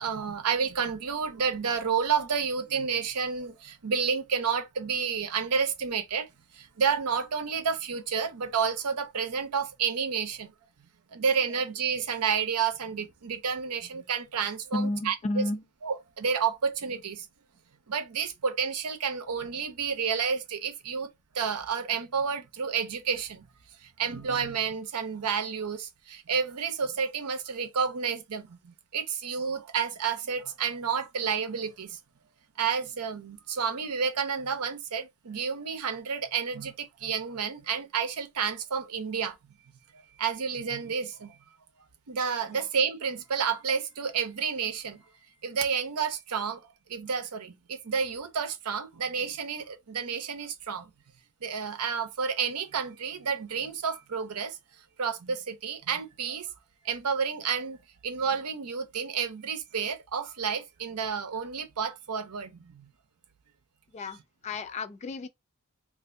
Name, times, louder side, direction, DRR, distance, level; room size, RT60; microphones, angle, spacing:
voice 1, 0.0-6.3 6.5-10.5 11.1-15.4 15.8-17.3 17.9-21.1 21.3-23.4 23.8-32.0 32.6-39.4 39.9-41.4 42.1-45.0 45.4-50.9 51.4-54.6 55.0-56.5 56.8-57.8 58.0-62.9, right 6 dB, 90° right, 0.7 m, -30 dB
voice 2, 14.7-15.6 42.5-42.6 63.9-65.3, left 2 dB, 30° left, 0.3 m, -32 dB
3.3 x 2.5 x 2.5 m
head